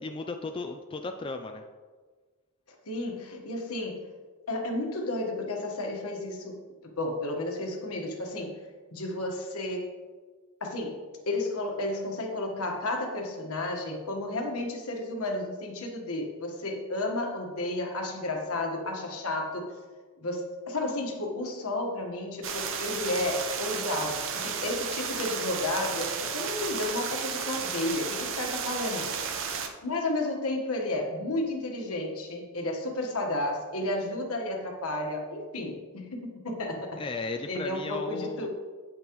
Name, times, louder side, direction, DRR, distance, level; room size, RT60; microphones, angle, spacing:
voice 1, 0.0-1.6 37.0-38.5, left 3 dB, 25° left, 5 dB, 0.3 m, -35 dB
voice 2, 2.9-4.1 4.5-8.6 8.9-9.9 10.6-11.0 11.3-19.7 20.2-29.2 29.8-37.0 37.5-38.5, left 2 dB, 70° left, 2 dB, 1.4 m, -32 dB
sound 1, 22.4-29.7, right 6 dB, 60° right, 0.8 m, -33 dB
8.6 x 8.1 x 3.0 m, 1.5 s
head